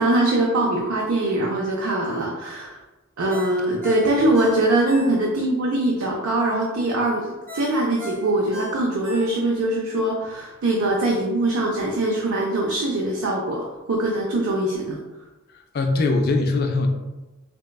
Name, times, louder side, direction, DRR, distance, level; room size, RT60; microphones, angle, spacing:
voice 1, 0.0-2.8 3.2-15.0, right 1 dB, 75° right, -2 dB, 0.5 m, -22 dB
Ringtone, 3.3-5.5 5.9-6.0 7.5-9.7 10.1-10.2, left 1 dB, 40° right, 0.7 m, -38 dB
voice 2, 15.5-16.9, left 3 dB, 45° left, 4 dB, 0.3 m, -22 dB
4.1 x 2.1 x 2.2 m, 1.1 s
head